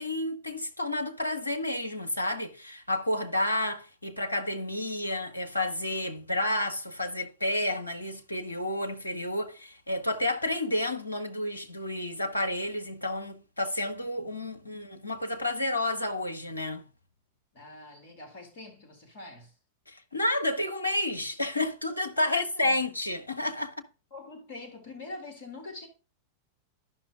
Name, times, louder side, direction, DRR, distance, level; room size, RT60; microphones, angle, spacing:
voice 1, 0.0-16.8 19.9-23.8, left 1 dB, 85° left, 0.8 m, -30 dB
voice 2, 17.5-19.5 22.2-22.8 24.1-25.9, left 2 dB, 50° left, 2.2 m, -44 dB
11.5 x 5.9 x 2.2 m
figure-of-eight pair, 90°, 0 cm